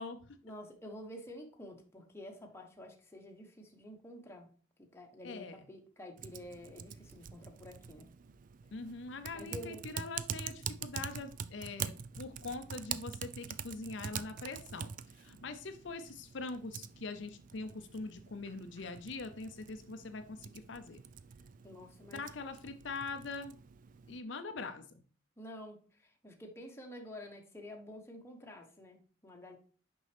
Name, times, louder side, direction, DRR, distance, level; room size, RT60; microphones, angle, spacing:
voice 1, 0.4-4.5 4.8-8.1 9.3-9.8 21.6-22.2 25.4-29.6, left 1 dB, 15° left, 1 dB, 1.1 m, -49 dB
voice 2, 5.2-5.7 8.7-21.0 22.1-23.6 24.1-25.0, left 3 dB, 65° left, 8 dB, 0.6 m, -43 dB
Typing, 6.2-24.2, right 8 dB, 40° right, 0.3 m, -45 dB
6.4 x 5.4 x 3.4 m, 0.42 s
head